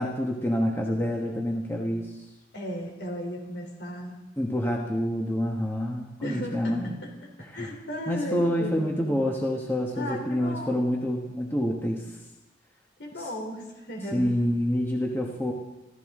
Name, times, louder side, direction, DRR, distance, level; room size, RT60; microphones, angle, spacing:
voice 1, 0.0-2.2 4.4-7.0 7.4-7.7 8.1-12.1 13.2-13.3 14.1-15.5, equal, 10° left, -1 dB, 1.3 m, -27 dB
voice 2, 2.5-4.2 6.2-7.1 7.5-9.2 10.0-10.8 13.0-14.4, equal, 65° left, 1 dB, 3.6 m, -35 dB
25.5 x 14.0 x 3.7 m, 1.0 s
head